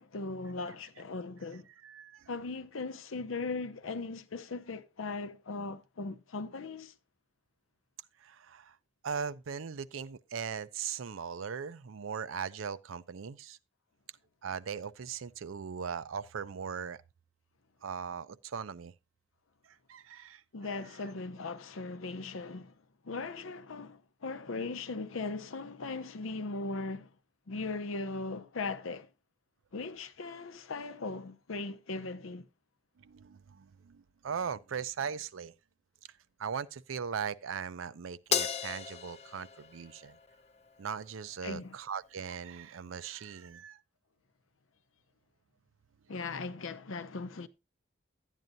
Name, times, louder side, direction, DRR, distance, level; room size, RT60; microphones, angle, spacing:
voice 1, 0.0-1.7 2.3-6.9 20.5-22.7 23.0-27.1 27.5-29.1 29.7-32.5 41.4-41.8 46.1-47.5, left 3 dB, 90° left, 0.6 m, -38 dB
voice 2, 1.8-2.3 8.2-8.8 9.0-13.6 14.4-17.0 17.8-18.9 19.9-20.4 33.0-35.5 36.4-40.2 40.8-43.8, right 6 dB, 85° right, 0.5 m, -39 dB
Crash cymbal, 38.3-40.8, left 7 dB, 30° left, 0.5 m, -35 dB
12.0 x 9.1 x 2.6 m
head